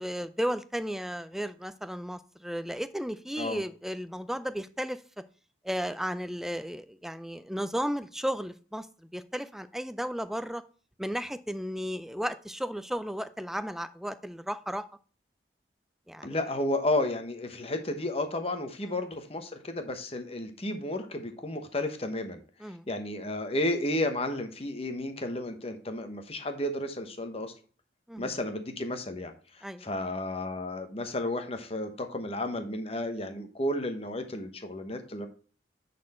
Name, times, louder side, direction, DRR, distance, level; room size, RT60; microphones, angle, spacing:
voice 1, 0.0-5.0 5.6-8.9 9.1-10.6 11.0-14.8 16.1-16.4 18.8-19.0 22.6-22.9 28.1-28.3 29.6-29.9, equal, ahead, 12 dB, 0.4 m, -34 dB
voice 2, 16.2-27.5 28.2-35.3, left 1 dB, 30° left, 6 dB, 1.1 m, -32 dB
10.0 x 4.3 x 4.3 m, 0.40 s
head